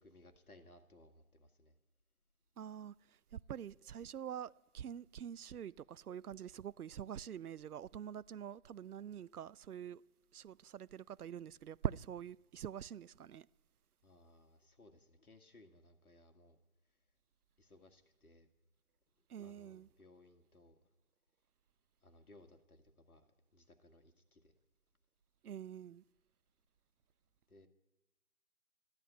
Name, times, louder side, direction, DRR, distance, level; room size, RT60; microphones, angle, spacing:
voice 1, 0.0-1.7 14.0-16.6 17.6-18.5 19.4-20.8 22.0-24.5 27.5-27.7, left 1 dB, 80° left, 2.0 m, -63 dB
voice 2, 2.6-10.0 10.3-13.5 19.3-19.9 25.4-26.0, right 9 dB, 90° right, 0.5 m, -45 dB
14.0 x 11.0 x 9.0 m
figure-of-eight pair, 175°, 43 cm